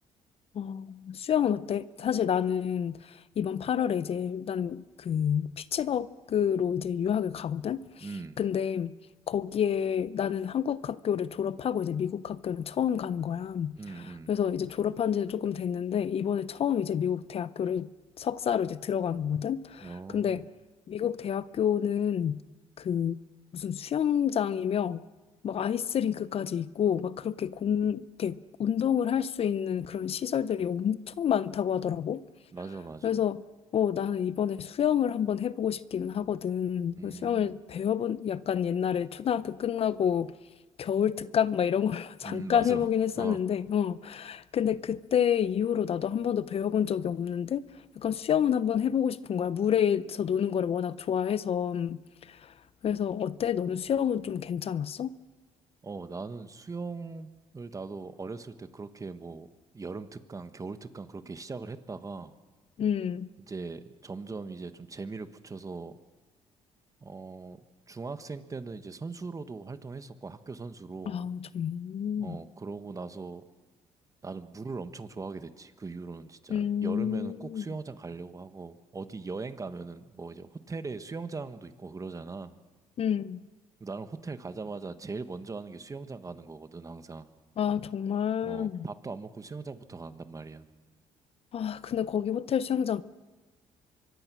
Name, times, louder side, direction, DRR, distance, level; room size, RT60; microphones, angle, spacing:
voice 1, 0.5-8.1 8.4-9.0 9.3-17.9 18.2-20.5 20.9-22.4 22.8-23.2 23.5-25.0 25.4-32.2 33.0-33.4 33.7-40.3 40.8-47.6 48.0-52.5 52.8-55.1 62.8-63.3 71.1-72.4 76.5-77.6 83.0-83.4 87.6-88.8 91.5-93.0, left 8 dB, 55° left, 0.7 m, -29 dB
voice 2, 8.0-8.4 13.8-14.3 19.8-20.4 32.5-33.2 37.0-37.6 42.2-42.9 43.2-43.4 55.8-57.3 57.5-59.5 59.7-62.3 63.4-65.9 67.0-67.6 67.9-71.3 72.2-73.4 74.2-82.6 83.8-87.3 88.4-90.7, right 4 dB, 25° right, 1.4 m, -40 dB
24.5 x 22.5 x 6.3 m
cardioid pair, 85°, 12 cm